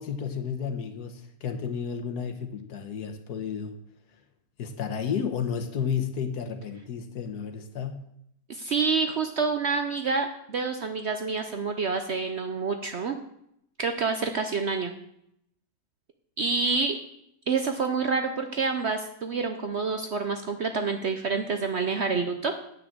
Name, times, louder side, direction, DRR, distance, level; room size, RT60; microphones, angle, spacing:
voice 1, 0.0-3.8 4.6-8.1, left 7 dB, 65° left, 6 dB, 1.4 m, -32 dB
voice 2, 8.5-13.1 13.8-14.9 16.4-17.0 17.5-22.5, right 4 dB, 65° right, 6 dB, 0.6 m, -27 dB
9.1 x 6.1 x 7.3 m, 0.76 s
omnidirectional pair, 2.0 m